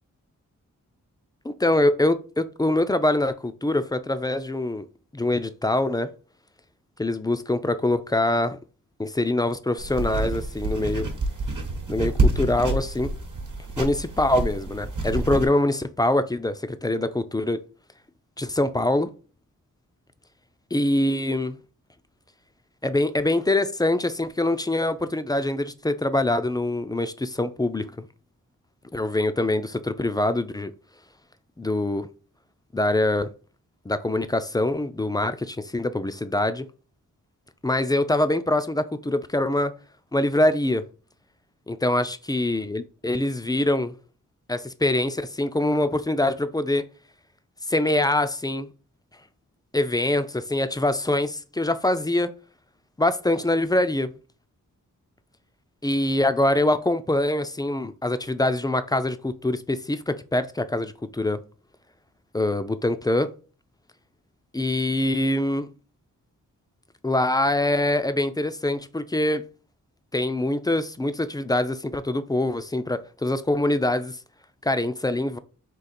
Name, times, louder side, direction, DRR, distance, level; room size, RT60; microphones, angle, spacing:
voice 1, 1.4-4.8 5.1-6.1 7.0-8.6 9.0-11.1 11.9-13.1 13.8-17.6 18.4-19.1 20.7-21.6 22.8-28.1 28.9-30.7 31.6-32.1 32.7-33.3 33.9-36.7 37.6-39.7 40.1-40.8 41.7-43.9 44.5-46.9 47.7-48.7 49.7-52.3 53.0-54.1 55.8-61.4 62.3-63.3 64.5-65.7 67.0-69.4 70.1-74.2 74.6-75.4, left 1 dB, 15° left, 0.3 m, -24 dB
sound 1, 9.8-15.4, right 2 dB, 65° right, 1.0 m, -27 dB
3.8 x 2.8 x 4.2 m
wide cardioid pair, 85°, 33 cm